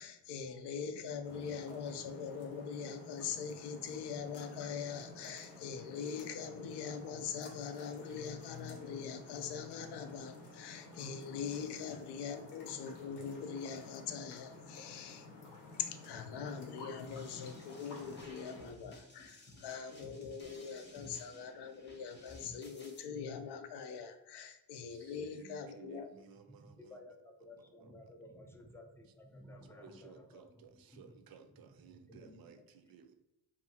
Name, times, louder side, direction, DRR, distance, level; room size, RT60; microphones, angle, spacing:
voice 1, 0.0-15.3 15.8-26.1, left 6 dB, 75° left, 7 dB, 0.5 m, -42 dB
sound 1, 1.2-18.7, left 3 dB, 90° left, 0.9 m, -53 dB
sound 2, 17.1-23.0, left 1 dB, 25° left, 0.8 m, -55 dB
voice 2, 24.9-27.0 27.8-27.9 29.8-33.1, right 6 dB, 55° right, 7 dB, 0.5 m, -57 dB
voice 3, 26.5-32.6, left 1 dB, 5° left, 2 dB, 0.4 m, -56 dB
2.7 x 2.4 x 2.8 m, 0.92 s
cardioid pair, 70°, 42 cm